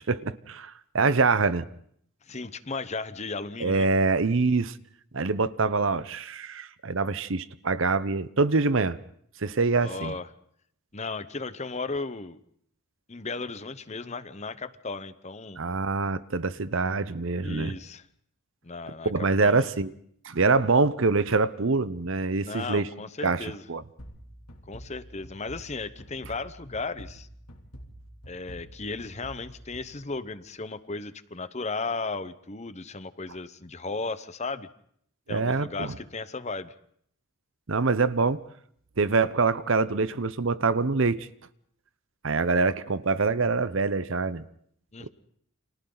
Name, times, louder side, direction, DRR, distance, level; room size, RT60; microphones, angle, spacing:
voice 1, 0.0-1.6 3.6-4.8 5.1-9.0 9.4-10.1 15.6-17.7 19.0-19.9 20.2-22.9 23.2-23.8 35.3-35.9 37.7-38.4 39.0-41.3 42.2-44.4 45.0-45.1, right 3 dB, 60° right, 0.8 m, -25 dB
voice 2, 2.2-3.9 9.8-10.3 10.9-12.4 13.1-15.6 17.4-18.0 18.6-19.7 22.4-23.6 24.7-27.3 28.3-34.7 35.3-36.7 44.9-45.1, left 3 dB, 30° left, 0.9 m, -35 dB
sound 1, 24.0-30.6, equal, 90° left, 3.1 m, -47 dB
30.0 x 26.0 x 4.0 m
head